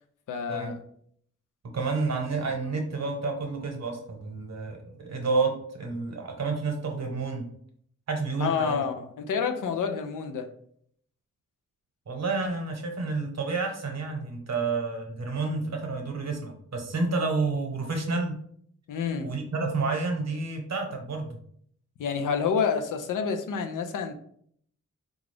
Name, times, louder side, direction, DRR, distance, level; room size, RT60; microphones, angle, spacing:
voice 1, 0.3-0.8 8.4-10.5 18.9-19.3 22.0-24.1, left 6 dB, 90° left, 6 dB, 0.5 m, -28 dB
voice 2, 1.7-7.4 8.1-8.9 12.1-18.4 19.2-21.3, right 3 dB, 60° right, 2 dB, 0.9 m, -30 dB
3.8 x 2.4 x 3.2 m, 0.64 s
wide cardioid pair, 95°, 30 cm